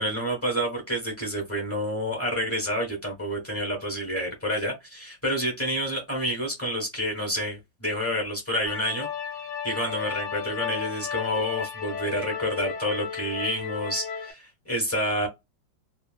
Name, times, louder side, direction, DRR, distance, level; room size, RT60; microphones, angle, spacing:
voice 1, 0.0-9.1 9.6-15.3, equal, 15° left, 0.5 m, -29 dB
sound 1, 8.7-14.3, left 7 dB, 70° left, 1.1 m, -34 dB
3.1 x 2.4 x 2.3 m
omnidirectional pair, 2.1 m